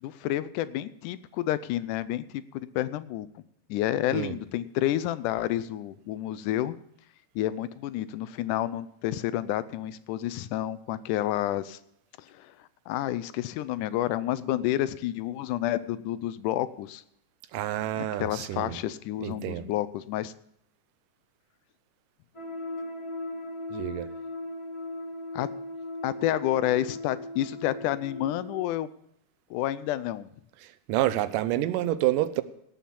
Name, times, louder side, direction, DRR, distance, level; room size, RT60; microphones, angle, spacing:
voice 1, 0.0-3.3 3.7-6.8 7.4-11.8 12.2-17.0 18.0-20.3 25.3-25.5 26.0-28.9 29.5-30.3, left 13 dB, 80° left, 15 dB, 2.1 m, -30 dB
voice 2, 17.5-18.8 19.2-19.7 23.7-24.1 30.9-32.4, right 14 dB, 90° right, 14 dB, 2.3 m, -28 dB
sound 1, 22.3-28.7, left 1 dB, 30° left, 2.5 m, -38 dB
17.5 x 5.9 x 7.0 m, 0.73 s
omnidirectional pair, 3.7 m